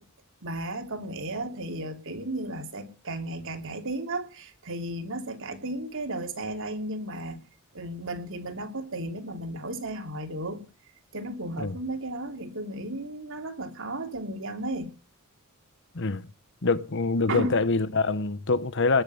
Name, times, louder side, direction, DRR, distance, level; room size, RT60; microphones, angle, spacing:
voice 1, 0.4-7.5 7.7-10.6 11.1-14.9 17.3-17.5, right 1 dB, 60° right, 2.8 m, -34 dB
voice 2, 15.9-16.3 16.6-19.0, left 3 dB, 55° left, 1.0 m, -25 dB
20.5 x 7.0 x 9.6 m
head